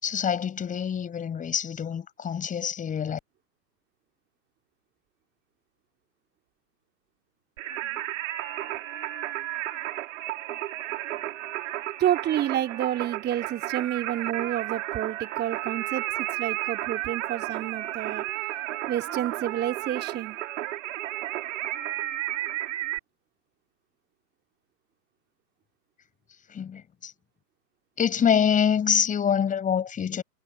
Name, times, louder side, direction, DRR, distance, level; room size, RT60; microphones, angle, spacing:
voice 1, 0.0-3.2 26.5-27.1 28.0-30.2, left 8 dB, 15° left, 7.6 m, -25 dB
Singing, 7.6-23.0, right 14 dB, 50° right, 5.6 m, -33 dB
voice 2, 12.0-18.2 18.9-20.4, right 12 dB, 20° right, 4.8 m, -29 dB
figure-of-eight pair, 120°, 50 cm